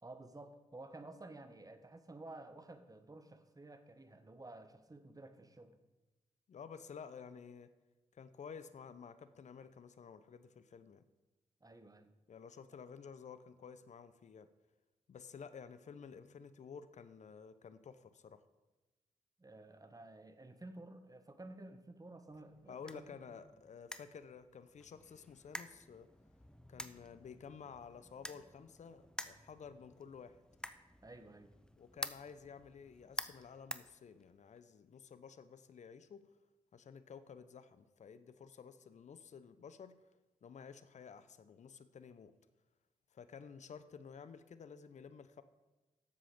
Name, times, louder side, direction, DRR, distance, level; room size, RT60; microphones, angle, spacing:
voice 1, 0.0-5.8 11.6-12.1 19.4-23.4 31.0-31.5, right 2 dB, 25° right, 9 dB, 1.5 m, -53 dB
voice 2, 6.5-7.7 8.1-11.1 12.3-14.5 15.1-18.4 22.7-26.1 26.7-30.4 31.8-36.2 36.7-40.0 40.4-42.4 43.1-45.4, left 6 dB, 60° left, 13 dB, 0.8 m, -52 dB
sound 1, 22.3-34.6, left 1 dB, 5° left, 0.9 m, -50 dB
12.0 x 7.7 x 5.1 m, 1.1 s
supercardioid pair, 40°, 14 cm